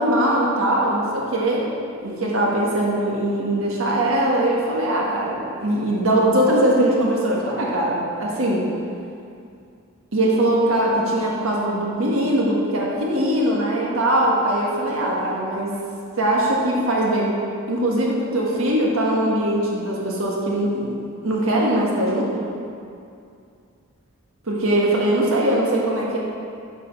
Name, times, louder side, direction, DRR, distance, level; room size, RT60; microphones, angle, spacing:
voice 1, 0.0-1.6 2.0-8.7 10.1-15.7 16.2-17.4 17.7-20.9 21.2-22.5 24.5-26.2, right 1 dB, 70° right, -3 dB, 1.5 m, -21 dB
7.3 x 5.0 x 5.4 m, 2.5 s
head